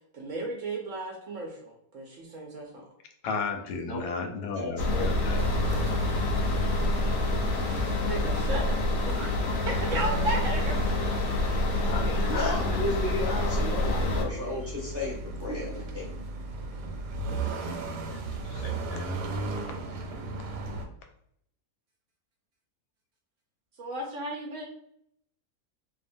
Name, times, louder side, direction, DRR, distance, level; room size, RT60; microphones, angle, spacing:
voice 1, 0.1-2.9 8.0-8.8 9.1-9.3 9.6-10.9 12.2-12.3 23.8-24.6, right 2 dB, 70° right, 0 dB, 0.8 m, -34 dB
voice 2, 3.2-5.5 11.2-11.5 11.8-11.9 18.6-18.7, left 4 dB, 85° left, 5 dB, 1.1 m, -34 dB
voice 3, 4.5-5.5 12.3-16.1, left 2 dB, 15° right, -6 dB, 0.6 m, -34 dB
sound 1, 4.8-14.3, left 2 dB, 70° left, 0.9 m, -27 dB
sound 2, 5.4-20.9, right 1 dB, 90° right, 1.2 m, -36 dB
voice 4, 11.9-12.8 13.2-14.0 14.5-14.6 18.0-19.1, left 1 dB, 40° left, -2 dB, 0.7 m, -38 dB
2.7 x 2.2 x 2.5 m, 0.72 s
omnidirectional pair, 1.7 m